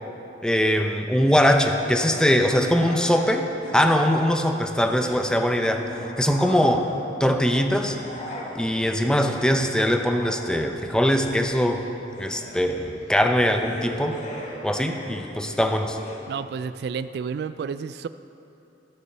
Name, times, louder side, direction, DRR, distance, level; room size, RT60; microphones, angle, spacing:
voice 1, 0.4-3.5 3.7-5.9 6.2-6.9 7.2-8.0 8.5-11.8 12.2-14.2 14.6-16.0, equal, 5° left, 5 dB, 0.6 m, -21 dB
sound 1, 1.7-4.4 4.7-7.1 7.6-16.2, left 1 dB, 45° left, 1.6 m, -39 dB
voice 2, 16.3-18.1, right 6 dB, 65° right, 13 dB, 0.3 m, -31 dB
13.0 x 6.9 x 6.7 m, 3.0 s
head